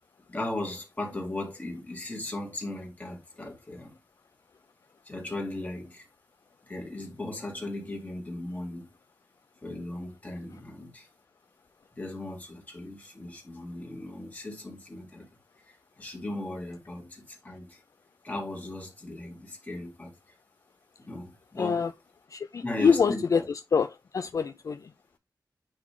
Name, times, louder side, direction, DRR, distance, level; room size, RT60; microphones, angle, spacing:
voice 1, 0.3-3.9 5.0-6.1 6.6-8.9 9.6-11.1 11.9-15.3 15.7-17.8 18.2-20.1 21.0-21.8 22.6-23.4, left 1 dB, 25° left, 2.4 m, -37 dB
voice 2, 21.6-21.9 22.3-24.9, left 6 dB, 50° left, 0.4 m, -26 dB
9.6 x 3.2 x 3.7 m
wide cardioid pair, 135°, 7 cm